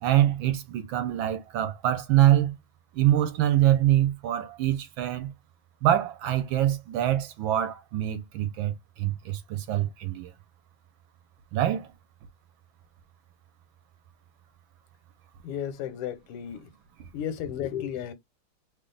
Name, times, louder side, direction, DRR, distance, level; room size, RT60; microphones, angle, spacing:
voice 1, 0.0-2.6 2.9-5.3 5.8-10.3 11.5-11.9, right 12 dB, 70° right, 1.3 m, -24 dB
voice 2, 15.4-16.7 17.1-18.1, left 9 dB, 90° left, 1.7 m, -33 dB
3.5 x 2.2 x 3.7 m
omnidirectional pair, 2.4 m